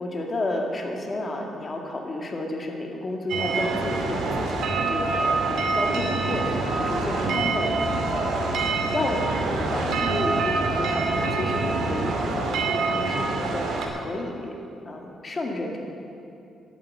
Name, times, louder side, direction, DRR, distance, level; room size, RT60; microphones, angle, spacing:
voice 1, 0.0-8.3 8.9-14.5 14.9-15.8, left 1 dB, 30° left, 1 dB, 2.1 m, -31 dB
sound 1, 3.3-13.9, right 3 dB, 75° right, 2.3 m, -25 dB
11.5 x 9.2 x 9.1 m, 2.6 s
cardioid pair, 105°, 0 cm